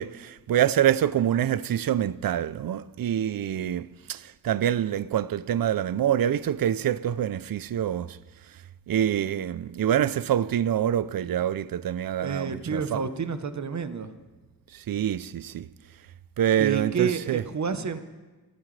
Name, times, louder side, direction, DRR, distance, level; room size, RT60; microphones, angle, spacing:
voice 1, 0.0-8.2 8.9-13.0 14.7-15.7 16.4-17.4, right 10 dB, 65° right, 0.5 m, -26 dB
voice 2, 12.2-14.1 16.6-18.0, right 5 dB, 50° right, 1.0 m, -29 dB
29.0 x 14.0 x 3.3 m
wide cardioid pair, 135°, 38 cm